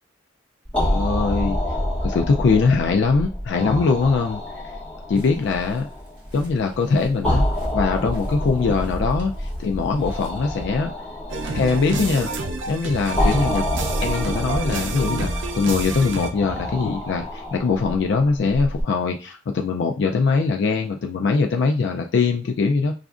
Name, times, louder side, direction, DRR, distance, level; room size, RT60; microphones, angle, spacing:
sound 1, 0.6-18.8, left 1 dB, 5° left, 1.3 m, -28 dB
voice 1, 0.8-1.6 2.0-4.6 5.1-5.9 6.3-7.5 7.7-10.9 11.5-12.3 12.7-13.7 14.0-22.9, left 4 dB, 65° left, 4 dB, 0.3 m, -22 dB
sound 2, 5.1-10.6, equal, 25° right, 1.4 m, -38 dB
sound 3, 11.3-16.3, right 3 dB, 90° right, 0.5 m, -28 dB
5.0 x 2.4 x 2.4 m, 0.35 s
head